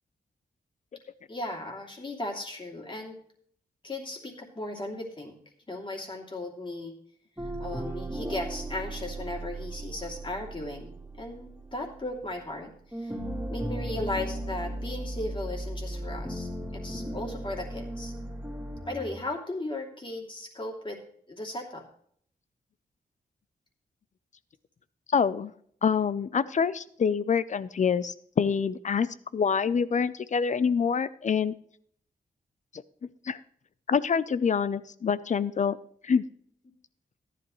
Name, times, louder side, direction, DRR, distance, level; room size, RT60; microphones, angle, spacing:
voice 1, 1.3-3.2 3.8-5.3 5.7-6.9 7.4-13.2 13.5-18.1 18.8-21.0 21.3-21.8, left 1 dB, 30° left, -1 dB, 2.8 m, -36 dB
sound 1, 7.4-12.6 12.9-19.2, right 1 dB, 10° right, 3.1 m, -36 dB
voice 2, 25.1-25.5 25.8-31.5 33.2-33.4 33.9-35.8 36.0-36.2, left 6 dB, 50° left, 16 dB, 0.6 m, -26 dB
14.5 x 11.0 x 3.1 m, 0.63 s
cardioid pair, 85°, 16 cm